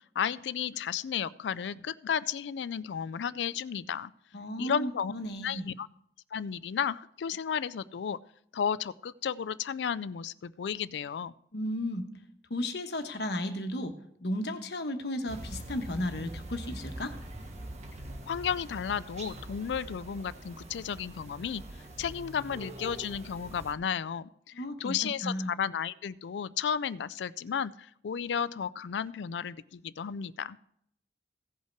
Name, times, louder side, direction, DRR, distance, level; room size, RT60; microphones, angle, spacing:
voice 1, 0.0-4.1 4.6-5.1 5.4-5.9 6.3-8.2 8.5-11.3 18.3-21.6 22.0-30.6, left 7 dB, 85° left, 18 dB, 0.4 m, -33 dB
voice 2, 4.3-5.7 11.5-12.0 12.5-13.9 14.2-17.1 24.5-25.5, left 1 dB, 70° left, 6 dB, 1.2 m, -34 dB
sound 1, 15.3-23.7, right 1 dB, 40° right, 1.2 m, -43 dB
16.0 x 5.6 x 4.6 m, 0.69 s
head